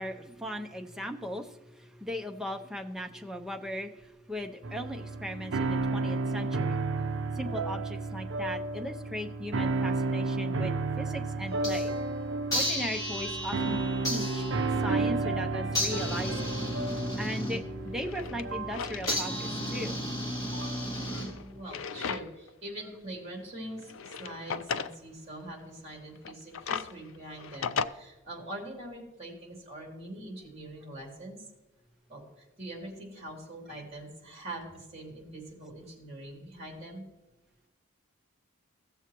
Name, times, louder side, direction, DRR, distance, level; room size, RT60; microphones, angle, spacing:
voice 1, 0.0-6.8 7.3-11.9 12.5-16.5 17.2-20.0 21.1-21.3, equal, ahead, 3 dB, 0.5 m, -38 dB
sound 1, 4.6-20.9, right 3 dB, 65° right, 0.5 m, -32 dB
sound 2, 11.5-12.1 12.5-21.7, equal, 15° left, 2.3 m, -34 dB
Drawer open or close, 17.9-19.3 19.7-19.8 20.8-22.5 22.9-23.0 23.8-25.0 26.2-27.9, left 6 dB, 80° left, 0.4 m, -36 dB
voice 2, 21.6-31.5 32.1-37.1, right 1 dB, 30° right, -1 dB, 2.7 m, -43 dB
16.0 x 7.1 x 3.0 m, 1.0 s
head